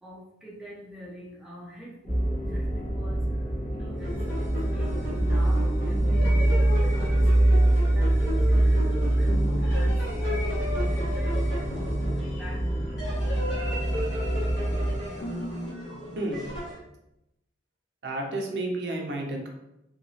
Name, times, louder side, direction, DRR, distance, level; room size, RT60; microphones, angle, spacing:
voice 1, 0.0-10.1 10.4-11.5 11.7-12.9, equal, ahead, -5 dB, 0.4 m, -45 dB
sound 1, 2.1-15.0, right 1 dB, 40° left, 0.8 m, -24 dB
sound 2, 3.9-16.8, left 1 dB, 75° left, 1.3 m, -35 dB
voice 2, 18.0-19.5, right 2 dB, 60° right, 1 dB, 0.5 m, -31 dB
2.9 x 2.3 x 2.7 m, 0.86 s
head